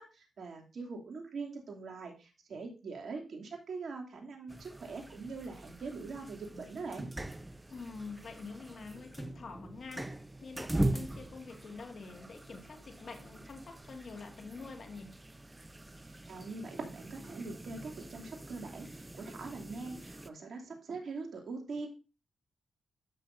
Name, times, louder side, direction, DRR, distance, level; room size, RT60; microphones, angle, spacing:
voice 1, 0.0-7.1 16.1-21.9, right 4 dB, 60° right, 1 dB, 2.6 m, -43 dB
sound 1, 4.5-20.3, right 1 dB, 15° right, 0.6 m, -41 dB
voice 2, 7.7-15.2, left 4 dB, 55° left, 5 dB, 2.0 m, -46 dB
13.5 x 6.4 x 2.6 m, 0.32 s
supercardioid pair, 55°, 0 cm